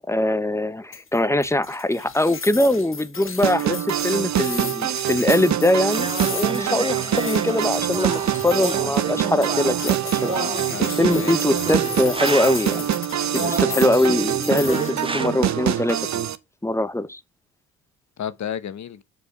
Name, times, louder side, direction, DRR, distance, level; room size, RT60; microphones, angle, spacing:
voice 1, 0.1-10.3 10.8-12.9 13.3-16.0 16.6-17.2, left 1 dB, 10° left, 1.0 m, -22 dB
sound 1, 0.9-14.9, left 5 dB, 35° left, 1.6 m, -36 dB
sound 2, 3.4-16.4, right 10 dB, 55° right, 1.0 m, -25 dB
sound 3, 5.9-12.8 13.3-15.3, right 3 dB, 15° right, 1.6 m, -31 dB
voice 2, 10.1-11.7 13.3-13.8 18.2-19.0, left 9 dB, 55° left, 1.1 m, -34 dB
7.2 x 5.1 x 6.0 m
supercardioid pair, 60°, 34 cm